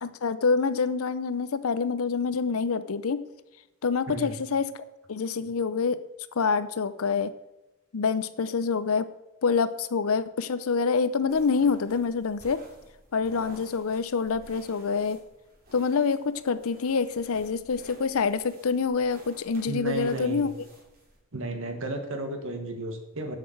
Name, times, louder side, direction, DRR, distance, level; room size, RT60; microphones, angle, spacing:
voice 1, 0.0-3.2 3.8-4.7 5.1-6.0 6.4-7.3 7.9-9.1 9.4-12.6 13.1-15.2 15.7-20.5, left 5 dB, 70° left, 14 dB, 0.6 m, -26 dB
sound 1, 11.3-21.2, right 1 dB, 45° right, 2.8 m, -53 dB
voice 2, 19.7-20.5 21.3-23.4, right 2 dB, 65° right, 5 dB, 1.5 m, -33 dB
7.8 x 6.7 x 6.5 m, 0.95 s
head